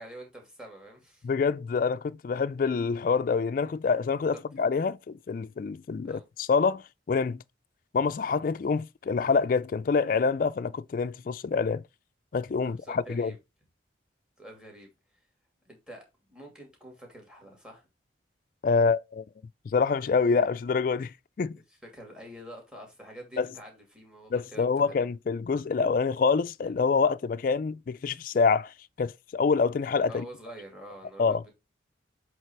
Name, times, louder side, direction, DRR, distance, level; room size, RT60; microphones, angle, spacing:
voice 1, 0.0-1.3 4.3-4.4 6.0-6.3 12.6-13.4 14.4-14.9 15.6-16.0 16.3-17.9 21.7-25.1 30.1-31.5, right 1 dB, 5° right, 2.5 m, -46 dB
voice 2, 1.2-6.8 7.1-7.4 7.9-11.8 12.3-13.3 18.6-19.2 19.7-21.5 23.4-23.5 24.3-30.3 31.2-31.4, left 5 dB, 45° left, 0.3 m, -26 dB
7.8 x 3.3 x 4.4 m
head